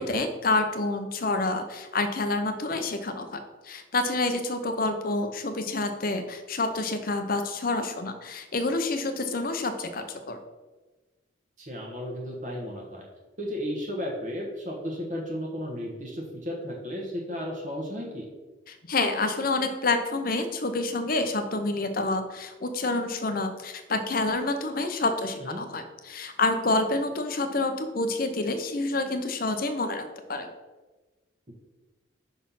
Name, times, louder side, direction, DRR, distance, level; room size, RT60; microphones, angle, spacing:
voice 1, 0.0-10.4 18.7-30.5, left 2 dB, 45° left, 7 dB, 0.7 m, -28 dB
voice 2, 11.6-13.0 13.4-18.3 25.4-25.6 31.5-31.6, equal, 40° right, -3 dB, 1.2 m, -34 dB
5.9 x 4.2 x 5.5 m, 1.2 s
head